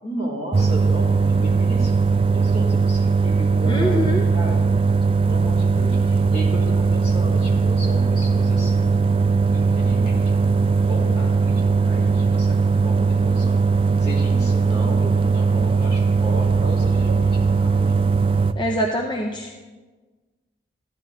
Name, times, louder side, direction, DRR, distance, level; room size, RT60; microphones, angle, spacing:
voice 1, 0.0-4.0 4.3-4.6 5.2-9.1 9.5-13.6 14.0-18.0, right 1 dB, 60° left, -5 dB, 3.1 m, -34 dB
sound 1, 0.5-18.5, right 4 dB, 30° right, 0.3 m, -19 dB
voice 2, 3.6-4.2 18.5-19.6, equal, 25° left, 1 dB, 0.6 m, -24 dB
14.5 x 11.0 x 2.8 m, 1.3 s
head